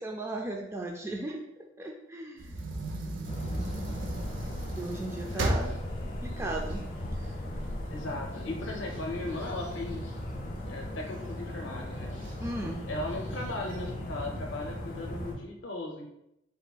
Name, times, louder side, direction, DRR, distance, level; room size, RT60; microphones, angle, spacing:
voice 1, 0.0-1.4 1.8-2.6 4.8-5.7 6.2-6.8 12.4-12.8, right 2 dB, 15° right, 1 dB, 0.3 m, -36 dB
sound 1, 2.4-7.6 8.1-8.2 8.5-10.6 11.1-11.6 12.2-12.3 12.6-12.7 13.2-13.8, right 1 dB, 90° right, 0.6 m, -35 dB
sound 2, 3.3-15.3, left 1 dB, 40° left, 1.1 m, -37 dB
voice 2, 5.3-5.8 7.9-10.1 10.7-12.2 12.6-16.1, left 2 dB, 75° left, 1 dB, 0.6 m, -37 dB
4.3 x 3.9 x 2.3 m, 0.83 s
head